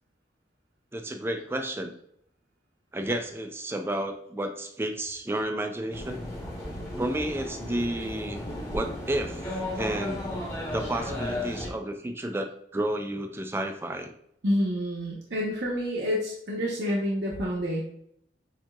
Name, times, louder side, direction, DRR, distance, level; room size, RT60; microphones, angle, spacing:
voice 1, 0.9-1.9 2.9-6.2 6.9-8.4 8.7-9.4 9.8-10.3 10.7-14.1, right 1 dB, 15° right, 6 dB, 0.4 m, -31 dB
sound 1, 5.9-11.7, left 1 dB, 15° left, 1.0 m, -34 dB
voice 2, 14.4-17.8, equal, 65° right, -4 dB, 0.9 m, -28 dB
7.3 x 2.8 x 2.3 m, 0.70 s
head